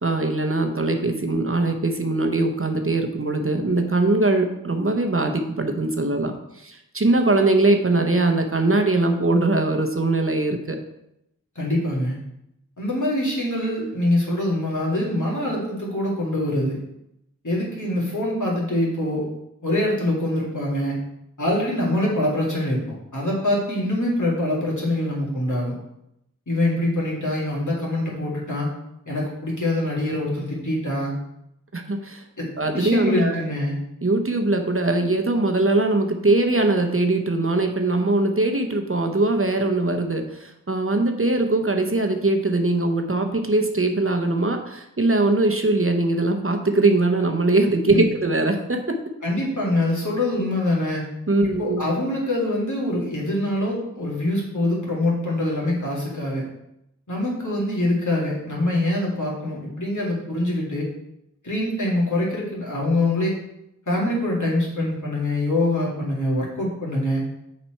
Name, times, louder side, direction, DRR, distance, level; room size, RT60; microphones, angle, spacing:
voice 1, 0.0-10.8 31.7-32.2 32.6-33.4 34.0-49.0 51.3-51.8, right 2 dB, 40° right, 4 dB, 0.8 m, -21 dB
voice 2, 11.6-12.2 12.8-16.8 17.4-19.3 19.6-21.0 21.4-25.7 26.5-28.7 29.1-31.1 32.4-32.5 32.7-33.8 47.9-48.0 49.2-51.0 51.4-56.4 57.1-60.9 61.4-63.4 63.9-67.2, left 1 dB, 60° left, -4 dB, 2.4 m, -24 dB
7.1 x 4.2 x 4.5 m, 0.82 s
wide cardioid pair, 40°, 33 cm